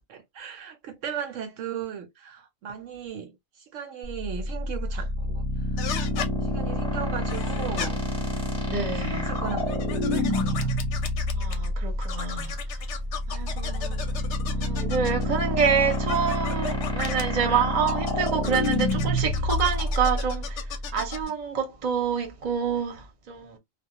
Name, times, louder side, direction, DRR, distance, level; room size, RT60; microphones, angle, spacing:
voice 1, 0.1-5.4 5.7-5.8 6.4-8.0 9.0-9.6 10.1-10.7, right 8 dB, 70° right, 0.9 m, -37 dB
sound 1, 4.0-21.2, left 1 dB, 5° left, 0.6 m, -28 dB
sound 2, 5.8-6.3 7.3-7.9 8.9-11.7 12.0-15.3 15.9-17.2 17.9-21.3, left 8 dB, 65° left, 0.8 m, -36 dB
voice 2, 8.7-9.4 11.3-12.6 13.3-14.2 14.4-20.6 20.9-23.6, right 6 dB, 40° right, 0.7 m, -27 dB
2.3 x 2.0 x 2.7 m
omnidirectional pair, 1.4 m